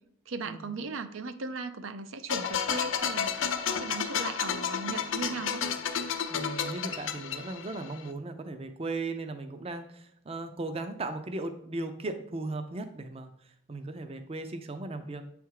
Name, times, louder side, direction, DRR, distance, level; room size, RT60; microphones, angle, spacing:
voice 1, 0.3-5.6, right 3 dB, 85° right, 10 dB, 0.6 m, -37 dB
sound 1, 2.3-8.0, left 7 dB, 80° left, 0.6 m, -31 dB
voice 2, 6.3-13.3 13.7-15.2, right 2 dB, 30° right, 8 dB, 0.5 m, -37 dB
8.0 x 3.5 x 4.7 m, 0.68 s
head